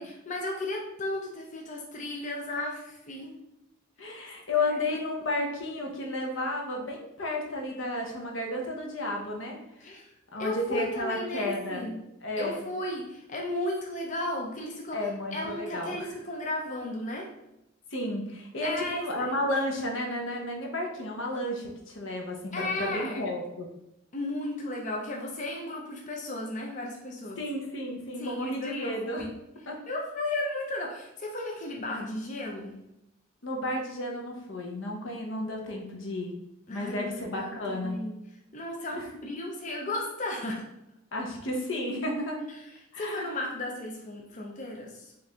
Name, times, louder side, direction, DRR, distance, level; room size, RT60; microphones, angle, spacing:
voice 1, 0.0-3.3 4.6-4.7 9.8-10.1 10.4-12.0 12.4-15.0 15.3-17.3 18.6-19.4 22.5-23.3 24.1-27.4 28.2-29.3 29.9-32.8 36.7-38.2 38.5-40.6 43.0-45.1, left 1 dB, 35° left, 0 dB, 0.5 m, -34 dB
voice 2, 4.0-9.6 10.3-11.9 12.2-12.6 14.9-16.1 17.9-23.7 27.4-29.2 29.7-29.8 33.4-36.3 36.7-38.0 38.9-39.0 41.1-42.4 42.9-43.3, left 1 dB, 65° left, 1 dB, 0.8 m, -32 dB
4.6 x 2.6 x 3.5 m, 0.87 s
head